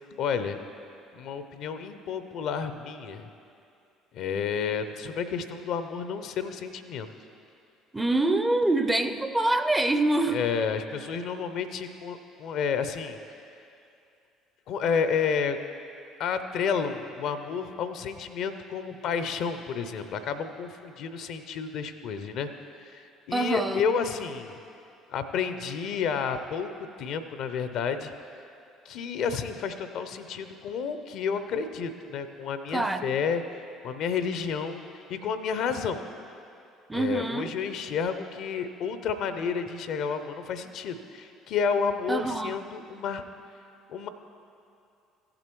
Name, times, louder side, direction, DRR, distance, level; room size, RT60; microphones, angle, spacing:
voice 1, 0.2-0.6 1.1-3.3 4.1-7.1 10.3-13.2 14.7-15.6 16.2-22.5 22.8-24.6 25.1-26.7 27.0-28.1 28.9-33.4 33.8-34.8 35.1-36.0 36.9-43.2 43.9-44.1, left 6 dB, 60° left, 10 dB, 0.5 m, -30 dB
voice 2, 7.9-10.4 23.3-23.8 32.7-33.1 36.9-37.5 42.1-42.6, right 2 dB, 10° right, 8 dB, 0.5 m, -25 dB
15.0 x 7.7 x 3.1 m, 2.6 s
figure-of-eight pair, 55°, 0 cm